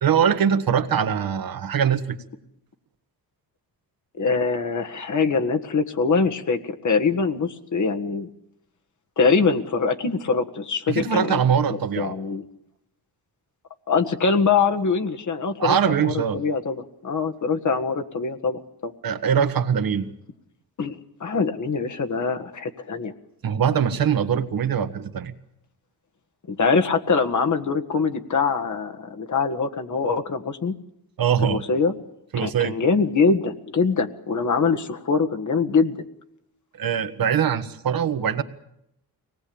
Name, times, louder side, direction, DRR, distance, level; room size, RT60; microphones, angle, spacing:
voice 1, 0.0-2.2 10.9-12.1 15.6-16.4 19.0-20.1 23.4-25.3 31.2-31.6 32.3-32.8 36.8-38.4, right 8 dB, 60° right, 9 dB, 1.5 m, -22 dB
voice 2, 4.2-8.3 9.2-11.4 11.7-12.4 13.9-18.9 20.8-23.1 26.5-30.7 31.4-31.9 32.4-36.0, left 5 dB, 50° left, 6 dB, 1.7 m, -23 dB
24.0 x 19.0 x 8.8 m, 0.81 s
cardioid pair, 105°, 38 cm